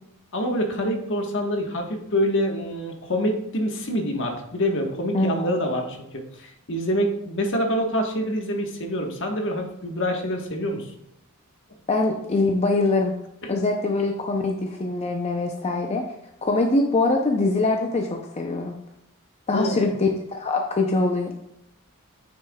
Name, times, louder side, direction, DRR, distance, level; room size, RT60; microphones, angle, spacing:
voice 1, 0.3-10.9 19.5-19.9, equal, 60° left, 2 dB, 1.3 m, -26 dB
voice 2, 5.1-5.6 11.9-13.1 13.5-16.0 16.4-18.8 19.5-20.1 20.4-21.4, left 2 dB, 30° left, 2 dB, 0.6 m, -23 dB
9.0 x 6.6 x 2.3 m, 0.83 s
head